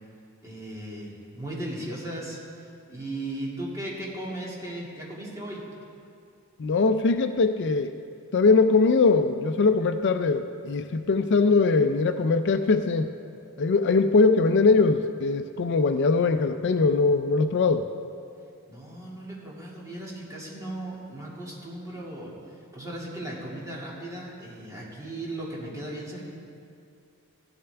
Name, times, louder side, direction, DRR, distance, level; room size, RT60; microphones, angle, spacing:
voice 1, 0.4-5.7 18.7-22.4 22.7-26.3, right 1 dB, 15° right, -6 dB, 2.4 m, -37 dB
voice 2, 6.6-7.9 8.3-13.1 13.6-17.9, left 4 dB, 55° left, 8 dB, 0.4 m, -21 dB
15.5 x 12.0 x 3.4 m, 2.5 s
head